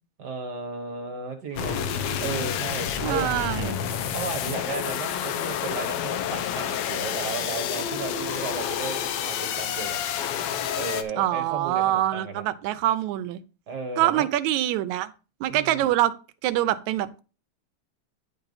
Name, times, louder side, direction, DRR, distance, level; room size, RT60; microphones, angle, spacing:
voice 1, 0.2-1.8 2.2-3.3 4.1-10.0 10.7-12.5 13.7-14.3 15.5-15.9, right 4 dB, 45° right, 6 dB, 1.4 m, -34 dB
sound 1, 1.6-11.0, left 8 dB, 75° left, 1.9 m, -29 dB
voice 2, 3.0-3.8 11.2-13.4 14.0-15.1 15.4-16.1 16.4-17.2, right 14 dB, 80° right, 12 dB, 2.0 m, -24 dB
10.5 x 5.6 x 4.0 m, 0.34 s
omnidirectional pair, 3.3 m